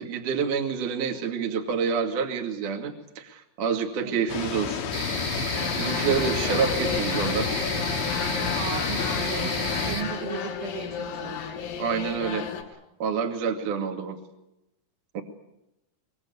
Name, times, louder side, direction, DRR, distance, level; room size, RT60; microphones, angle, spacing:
voice 1, 0.0-4.8 5.8-7.5 11.8-12.5 13.0-14.2 15.1-15.2, right 6 dB, 45° right, 3 dB, 3.3 m, -28 dB
sound 1, 4.3-10.0, left 8 dB, 60° left, 3.2 m, -32 dB
sound 2, 4.9-10.0, equal, 30° left, 8.6 m, -31 dB
sound 3, 5.6-12.6, left 7 dB, 85° left, 5.9 m, -33 dB
voice 2, 5.9-6.5 8.5-9.6 9.9-11.4, right 10 dB, 70° right, 5 dB, 3.8 m, -37 dB
24.5 x 22.5 x 8.4 m, 0.86 s
omnidirectional pair, 5.9 m